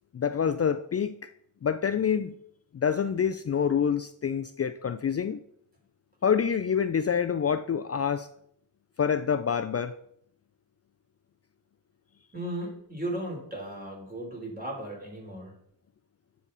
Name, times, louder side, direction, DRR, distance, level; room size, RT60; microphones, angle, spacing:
voice 1, 0.1-1.3 1.6-2.3 2.7-5.4 6.2-8.3 9.0-9.9, left 7 dB, 35° left, 0.4 m, -27 dB
voice 2, 12.3-15.5, right 1 dB, 20° right, 3.6 m, -36 dB
9.8 x 7.0 x 4.0 m
cardioid pair, 95°, 44 cm